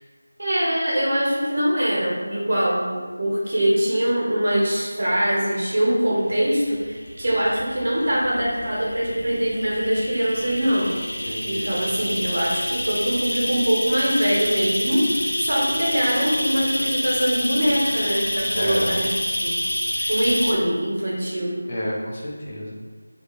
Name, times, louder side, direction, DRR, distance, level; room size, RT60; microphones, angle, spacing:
voice 1, 0.4-11.0 11.4-19.1 19.4-19.6 19.9-21.6, equal, 60° right, -5 dB, 0.9 m, -23 dB
sound 1, 6.2-20.5, equal, 90° left, 0.4 m, -28 dB
voice 2, 11.2-11.8 18.5-19.0 20.0-20.2 21.7-22.7, equal, 35° left, -5 dB, 0.5 m, -30 dB
2.4 x 2.4 x 2.9 m, 1.5 s
figure-of-eight pair, 170°, 0 cm